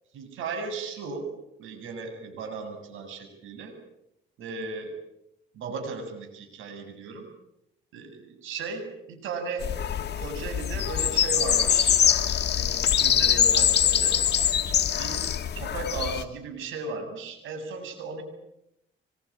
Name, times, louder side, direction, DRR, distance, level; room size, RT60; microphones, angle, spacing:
voice 1, 0.1-1.3 1.6-3.8 4.4-4.9 5.5-7.3 7.9-9.7 10.2-14.2 14.9-18.2, right 4 dB, 85° right, 5 dB, 7.7 m, -36 dB
sound 1, 9.6-16.2, left 9 dB, 60° left, 2.1 m, -23 dB
25.0 x 23.5 x 8.9 m, 0.83 s
cardioid pair, 90°, 20 cm